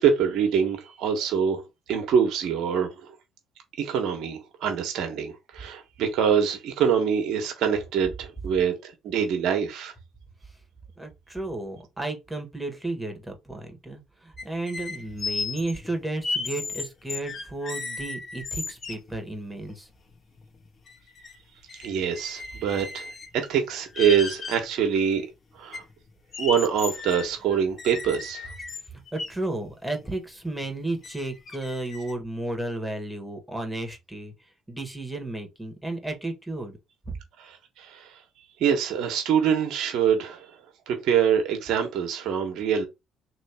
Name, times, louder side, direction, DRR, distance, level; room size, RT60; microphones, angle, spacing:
voice 1, 0.0-1.6 1.9-3.1 3.8-9.9 21.8-25.2 25.5-25.8 26.4-28.5 37.4-38.2 38.6-40.6 40.9-42.8, right 7 dB, 70° right, 1.2 m, -25 dB
voice 2, 11.0-19.9 28.9-34.3 34.7-36.8 37.1-37.2, right 2 dB, 5° right, 1.6 m, -33 dB
sound 1, 14.4-19.1 19.7-19.8 20.1-21.4 21.7-23.4 23.8-24.6 25.2-25.3 25.7-29.3 30.0-30.1 30.5-30.7 31.0-32.1, left 4 dB, 45° left, 1.0 m, -35 dB
3.1 x 3.0 x 4.5 m
supercardioid pair, 65°, 0 cm